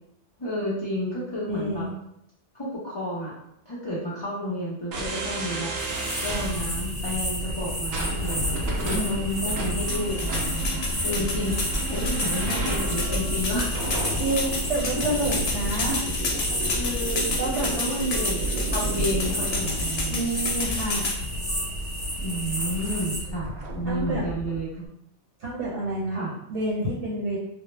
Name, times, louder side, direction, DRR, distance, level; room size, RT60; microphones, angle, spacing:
voice 1, 0.4-1.9 2.5-3.3 3.7-5.7 6.2-13.8 14.9-15.4 15.9-16.1 16.7-17.3 17.7-20.3 22.2-24.8 26.1-26.3, equal, 45° left, -7 dB, 0.3 m, -31 dB
voice 2, 1.5-1.9 8.9-9.4 14.2-16.0 17.4-17.7 20.1-21.3 23.8-24.2 25.4-26.2 26.5-27.4, right 1 dB, 85° right, -7 dB, 1.0 m, -29 dB
sound 1, 4.9-24.6, right 1 dB, 70° right, 0.8 m, -31 dB
sound 2, 5.8-23.2, equal, ahead, 0.6 m, -32 dB
sound 3, 9.9-21.2, left 3 dB, 65° left, 0.7 m, -31 dB
2.0 x 2.0 x 3.1 m, 0.77 s
omnidirectional pair, 1.2 m